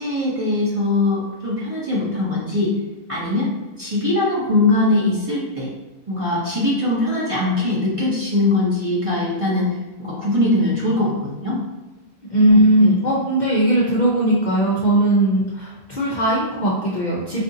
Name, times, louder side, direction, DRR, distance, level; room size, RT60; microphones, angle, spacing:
voice 1, 0.0-2.7 3.1-3.5 3.8-5.7 6.1-9.7 10.0-11.6 12.5-12.9, left 2 dB, 30° right, -7 dB, 0.7 m, -21 dB
voice 2, 12.3-17.4, right 1 dB, 50° left, -5 dB, 0.5 m, -18 dB
4.2 x 2.6 x 2.6 m, 1.2 s
omnidirectional pair, 1.4 m